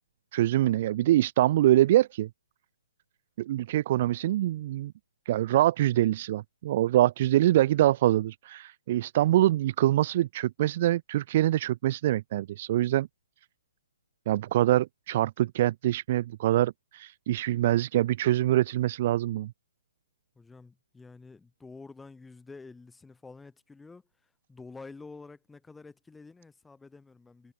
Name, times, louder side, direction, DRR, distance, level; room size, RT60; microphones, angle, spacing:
voice 1, 0.3-2.3 3.4-4.9 5.3-13.1 14.3-19.5, right 14 dB, 45° right, 0.4 m, -24 dB
voice 2, 20.4-27.5, left 4 dB, 5° left, 3.8 m, -49 dB
hypercardioid pair, 150°, 0 cm